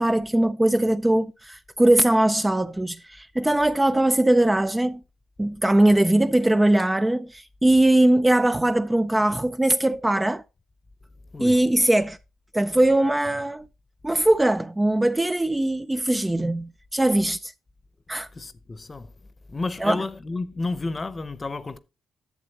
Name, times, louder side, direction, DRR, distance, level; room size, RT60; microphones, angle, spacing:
voice 1, 0.0-5.0 5.4-10.4 11.4-12.2 12.5-13.7 14.0-17.5 18.1-18.3 19.8-20.0, right 1 dB, 10° right, 0.3 m, -21 dB
voice 2, 18.3-19.1 19.5-21.8, left 3 dB, 25° left, 0.8 m, -31 dB
11.0 x 7.7 x 2.9 m
cardioid pair, 110°, 0 cm